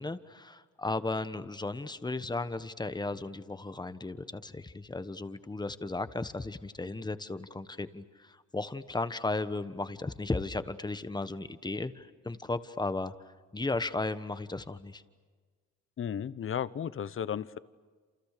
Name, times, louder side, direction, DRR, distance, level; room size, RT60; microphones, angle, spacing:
voice 1, 0.0-13.1 13.5-15.0, left 2 dB, 15° left, 12 dB, 1.3 m, -35 dB
voice 2, 16.0-17.6, left 8 dB, 45° left, 17 dB, 0.9 m, -34 dB
28.5 x 28.5 x 6.7 m, 1.5 s
cardioid pair, 90°, 30 cm